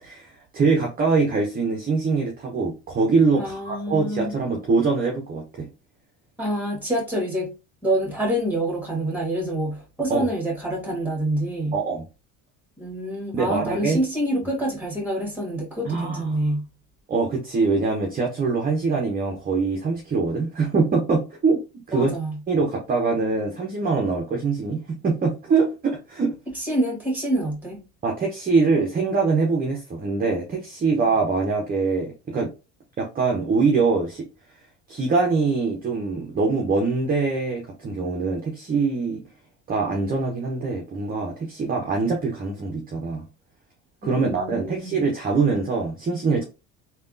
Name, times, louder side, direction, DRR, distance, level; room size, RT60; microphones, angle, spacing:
voice 1, 0.0-5.7 10.1-10.3 11.7-12.0 13.3-14.0 15.8-16.3 17.1-21.6 21.9-22.1 22.5-26.3 28.0-32.5 33.0-34.3 34.9-39.2 39.7-43.2 44.0-46.4, right 4 dB, 25° right, 0.7 m, -23 dB
voice 2, 3.4-4.3 6.4-7.5 7.8-11.8 12.8-16.7 21.9-22.4 26.5-27.8 44.0-45.0, right 1 dB, 5° right, 1.6 m, -26 dB
3.3 x 2.3 x 2.5 m
supercardioid pair, 100°, 33 cm